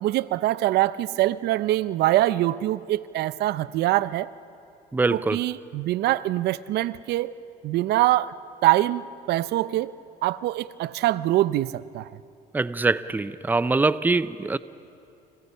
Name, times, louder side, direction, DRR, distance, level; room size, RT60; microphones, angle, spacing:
voice 1, 0.0-4.3 5.1-7.3 7.6-8.3 8.6-9.9 10.2-12.1, right 15 dB, 75° right, 0.6 m, -24 dB
voice 2, 4.9-5.4 12.5-14.6, right 3 dB, 10° right, 0.6 m, -23 dB
29.5 x 29.5 x 5.6 m
cardioid pair, 110°, 17 cm